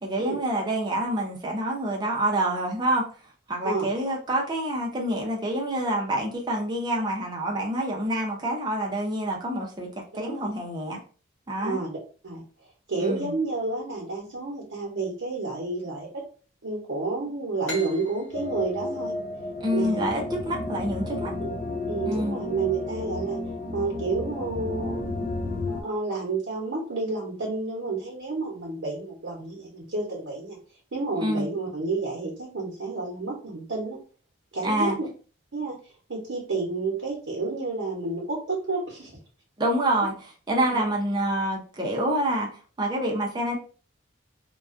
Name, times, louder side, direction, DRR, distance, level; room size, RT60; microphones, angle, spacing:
voice 1, 0.0-3.0 3.5-9.9 10.1-11.0 11.5-11.8 13.0-13.3 19.6-21.3 22.1-22.4 31.2-31.5 34.6-35.0 39.6-42.5 42.8-43.6, right 1 dB, 20° right, -1 dB, 0.5 m, -27 dB
voice 2, 11.6-12.0 12.2-12.4 12.9-16.2 16.6-19.2 19.7-20.0 21.4-21.5 21.9-23.4 23.7-25.0 25.7-30.6 30.9-34.0 34.5-34.9 35.5-35.8 36.1-39.2 40.6-40.8, right 3 dB, 80° right, -4 dB, 0.8 m, -30 dB
sound 1, 17.6-21.1, left 2 dB, 65° left, 0.8 m, -42 dB
sound 2, 18.3-25.8, left 2 dB, 40° left, 0.3 m, -32 dB
2.3 x 2.2 x 2.4 m, 0.39 s
head